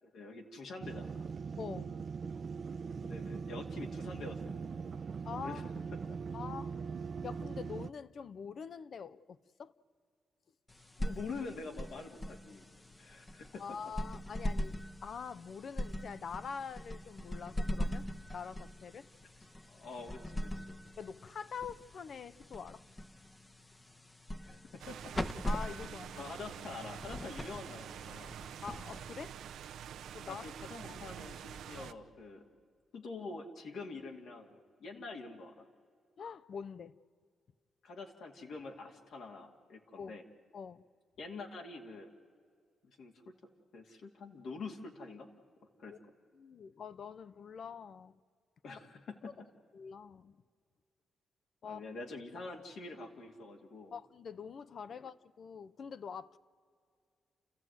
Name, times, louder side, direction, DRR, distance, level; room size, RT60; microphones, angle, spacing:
voice 1, 0.0-1.3 3.0-4.8 5.4-5.6 5.9-6.2 11.0-12.6 13.0-13.8 19.7-20.8 24.4-25.0 26.2-28.4 30.3-32.4 32.9-35.7 37.8-40.2 41.2-42.1 42.8-43.4 43.7-45.3 45.8-46.0 48.6-49.3 51.6-53.9, left 3 dB, 75° left, 2.3 m, -46 dB
sound 1, 0.8-7.9, right 5 dB, 45° right, 0.6 m, -41 dB
voice 2, 1.6-2.0 5.2-5.7 6.3-6.8 7.2-9.7 13.6-18.0 18.3-19.1 21.0-22.8 25.5-26.2 28.6-29.4 30.1-30.5 30.8-31.0 31.7-31.9 36.2-37.0 40.0-40.1 40.5-40.8 45.9-46.0 46.3-48.2 49.7-50.4 51.6-51.8 53.9-56.4, left 6 dB, 55° left, 0.6 m, -45 dB
sound 2, 10.7-29.6, left 1 dB, 15° left, 0.8 m, -42 dB
sound 3, 24.8-31.9, right 9 dB, 85° right, 0.8 m, -47 dB
29.5 x 14.0 x 9.3 m
cardioid pair, 110°, 0 cm